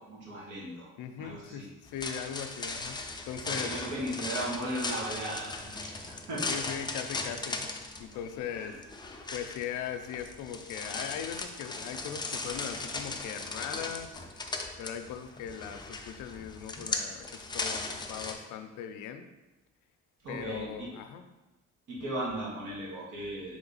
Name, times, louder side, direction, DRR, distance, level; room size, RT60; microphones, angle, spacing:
voice 1, 0.0-0.9 1.2-1.7 3.4-6.4 8.5-8.7 20.2-20.9 21.9-23.6, right 1 dB, 85° right, -5 dB, 1.5 m, -37 dB
voice 2, 1.0-3.8 6.5-7.7 8.0-8.7 9.3-14.3 14.8-19.3 20.3-21.2, left 8 dB, 90° left, 8 dB, 0.4 m, -39 dB
sound 1, 1.9-18.4, left 3 dB, 15° left, 0.4 m, -38 dB
3.5 x 3.1 x 4.0 m, 1.1 s
cardioid pair, 90°, 30 cm